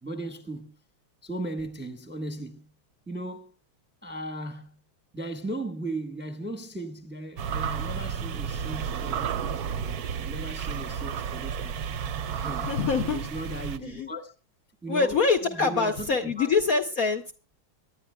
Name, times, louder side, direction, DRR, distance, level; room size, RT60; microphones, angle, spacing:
voice 1, 0.0-0.7 1.2-2.7 3.1-3.5 4.0-4.8 5.1-9.6 10.1-11.7 12.3-12.7 13.0-14.3 14.8-16.5, right 1 dB, 5° right, 0.9 m, -37 dB
sound 1, 7.4-13.8, right 7 dB, 65° right, 1.0 m, -32 dB
voice 2, 12.5-13.2 13.8-14.1 14.9-17.3, left 4 dB, 55° left, 1.0 m, -25 dB
24.0 x 10.5 x 2.2 m
omnidirectional pair, 2.2 m